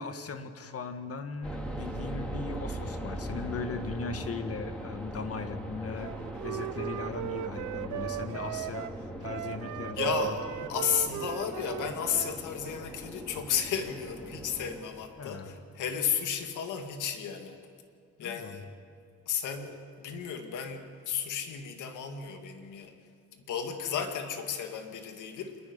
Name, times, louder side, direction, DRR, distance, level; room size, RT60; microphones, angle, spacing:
voice 1, 0.0-6.2 6.4-8.9 9.2-10.4 15.2-15.5 18.2-18.7, left 4 dB, 50° left, 8 dB, 1.8 m, -38 dB
sound 1, 1.4-14.8, right 1 dB, 5° left, 3.2 m, -40 dB
Wind instrument woodwind instrument, 6.0-12.4, right 13 dB, 80° right, 0.7 m, -37 dB
voice 2, 10.0-10.4 10.7-17.6 18.2-18.7 19.3-22.9 23.3-25.6, left 8 dB, 80° left, 5 dB, 2.2 m, -33 dB
27.0 x 11.0 x 9.6 m, 2.2 s
cardioid pair, 90°, 30 cm